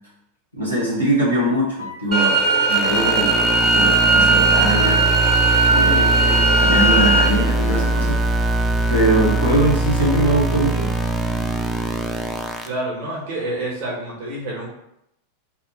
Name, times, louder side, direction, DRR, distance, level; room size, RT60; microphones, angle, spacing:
voice 1, 0.5-2.4 2.6-5.1 5.7-8.4 8.9-10.9, right 1 dB, 85° right, -8 dB, 1.2 m, -22 dB
Wind instrument woodwind instrument, 1.8-9.5, right 4 dB, 70° left, 0.5 m, -25 dB
sound 1, 2.1-7.3, right 2 dB, 25° right, 0.8 m, -19 dB
sound 2, 2.7-12.7, right 2 dB, 10° right, 0.4 m, -22 dB
voice 2, 12.6-14.7, right 1 dB, 50° right, -5 dB, 1.2 m, -28 dB
2.7 x 2.4 x 3.9 m, 0.80 s
figure-of-eight pair, 90°, 0 cm